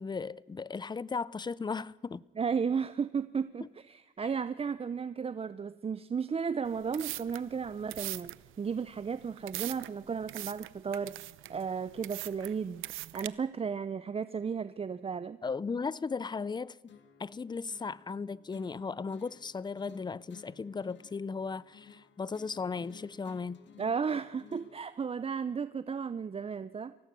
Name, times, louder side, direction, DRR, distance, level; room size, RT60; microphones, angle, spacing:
voice 1, 0.0-2.2 15.4-16.8 17.2-23.6, left 5 dB, 20° left, 0.6 m, -36 dB
voice 2, 2.4-11.2 11.5-12.8 13.1-15.4 23.8-26.9, right 6 dB, 30° right, 0.6 m, -34 dB
sound 1, 6.6-13.3, right 16 dB, 90° right, 0.7 m, -42 dB
sound 2, 16.9-24.9, left 7 dB, 65° left, 2.2 m, -56 dB
24.0 x 17.0 x 6.8 m
cardioid pair, 90°, 20 cm